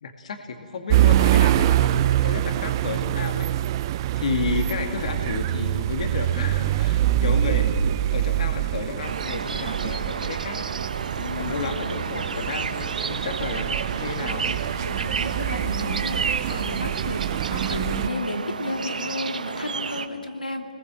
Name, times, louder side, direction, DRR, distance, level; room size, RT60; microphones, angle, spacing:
voice 1, 0.0-3.5 4.2-7.7 8.1-10.7 11.0-14.6, left 4 dB, 55° left, 4 dB, 2.2 m, -32 dB
sound 1, 0.9-18.1, right 12 dB, 30° right, 0.5 m, -25 dB
sound 2, 9.0-20.1, right 5 dB, 65° right, 1.3 m, -31 dB
voice 2, 11.2-12.0 13.6-14.1 14.8-20.6, left 2 dB, 90° left, 3 dB, 2.8 m, -33 dB
29.5 x 20.5 x 7.6 m, 2.4 s
figure-of-eight pair, 145°, 5 cm